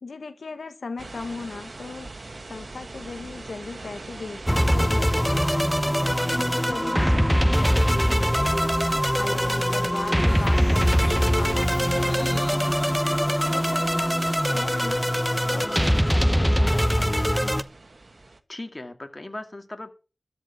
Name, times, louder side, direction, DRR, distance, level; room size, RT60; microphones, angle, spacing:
voice 1, 0.0-2.1 2.5-5.8 6.2-8.7 9.2-12.7 13.2-15.1 15.4-17.2, left 4 dB, 90° left, 0.9 m, -38 dB
sound 1, 1.0-18.4, right 2 dB, 60° right, 1.4 m, -41 dB
sound 2, 4.5-17.6, equal, ahead, 0.8 m, -22 dB
sound 3, 8.9-17.2, left 1 dB, 20° left, 6.4 m, -44 dB
voice 2, 18.5-19.9, left 2 dB, 35° left, 2.0 m, -38 dB
13.0 x 5.1 x 7.0 m
wide cardioid pair, 50°, 0 cm